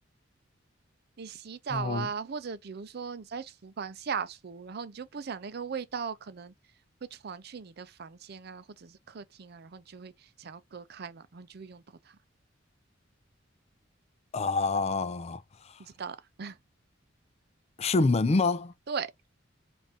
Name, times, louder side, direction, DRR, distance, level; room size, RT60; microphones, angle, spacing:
voice 1, 1.2-6.5 7.1-12.2 15.8-16.6 18.9-19.1, right 6 dB, 55° right, 0.5 m, -38 dB
voice 2, 1.7-2.1 14.3-15.8 17.8-18.7, left 3 dB, 35° left, 0.4 m, -27 dB
5.3 x 2.6 x 2.7 m
head